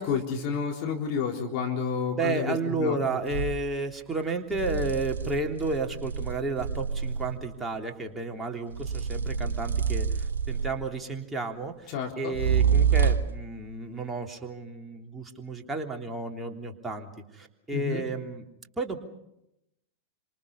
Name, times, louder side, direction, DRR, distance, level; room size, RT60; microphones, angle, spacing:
voice 1, 0.0-3.0 11.9-12.3 17.7-18.0, left 6 dB, 40° left, 1 dB, 4.0 m, -30 dB
voice 2, 2.2-18.5 18.8-19.0, right 3 dB, 10° right, 2 dB, 3.4 m, -32 dB
sound 1, 3.3-3.6 4.5-7.5 8.7-11.0 12.3-13.4, right 7 dB, 70° right, 1.0 m, -27 dB
27.5 x 26.5 x 5.6 m, 0.83 s
figure-of-eight pair, 90°, 0 cm